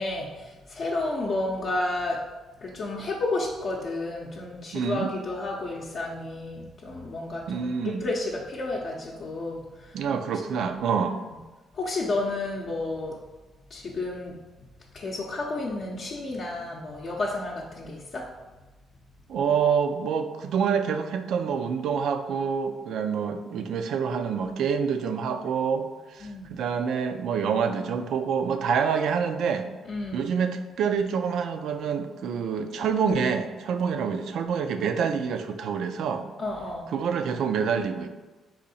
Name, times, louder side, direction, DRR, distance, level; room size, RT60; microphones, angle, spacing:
voice 1, 0.0-2.2 2.6-9.9 10.6-10.7 11.7-13.1 13.7-14.4 14.9-18.3 26.2-26.5 29.9-30.3 36.4-36.9, left 2 dB, 50° left, -3 dB, 0.6 m, -31 dB
voice 2, 4.7-5.1 7.5-8.1 9.9-11.2 19.3-29.7 30.1-36.3 36.9-38.1, right 6 dB, 75° right, 7 dB, 0.4 m, -27 dB
4.1 x 2.7 x 4.1 m, 1.2 s
cardioid pair, 90°, 0 cm